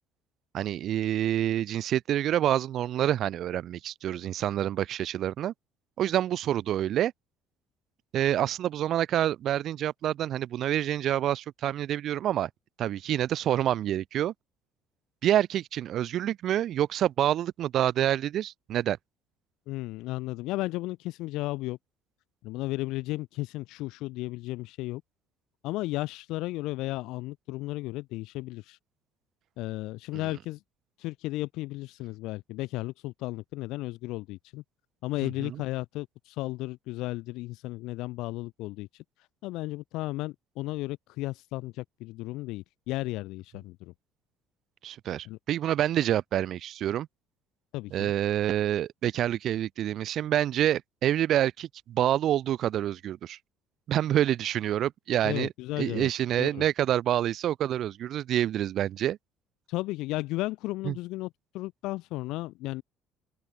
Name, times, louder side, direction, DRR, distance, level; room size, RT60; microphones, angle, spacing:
voice 1, 0.5-5.5 6.0-7.1 8.1-12.5 12.8-14.3 15.2-19.0 35.4-35.6 44.8-47.1 47.9-53.4 53.9-55.5 55.8-59.2 60.9-61.0, right 11 dB, 45° right, 1.1 m, -27 dB
voice 2, 19.7-21.8 22.4-25.0 25.6-28.8 29.6-30.6 31.0-34.6 35.0-43.9 45.3-45.4 47.7-48.1 55.2-56.1 56.4-56.6 59.7-61.3 61.5-62.8, left 19 dB, 70° left, 3.7 m, -34 dB
open air
cardioid pair, 175°, 0 cm